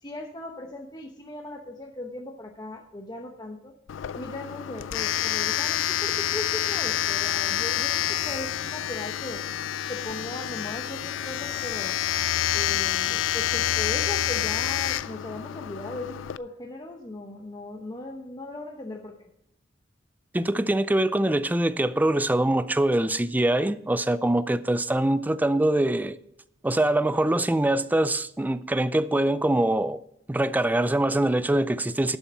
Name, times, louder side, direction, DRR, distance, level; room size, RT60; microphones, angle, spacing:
voice 1, 0.0-3.7 4.1-9.4 9.9-12.0 12.5-19.3, left 2 dB, 20° left, 0.9 m, -38 dB
Domestic sounds home sounds, 3.9-16.4, left 12 dB, 85° left, 0.4 m, -28 dB
voice 2, 20.3-26.2 26.6-30.0 30.3-32.2, right 1 dB, 10° right, 0.4 m, -23 dB
12.0 x 7.1 x 5.6 m
head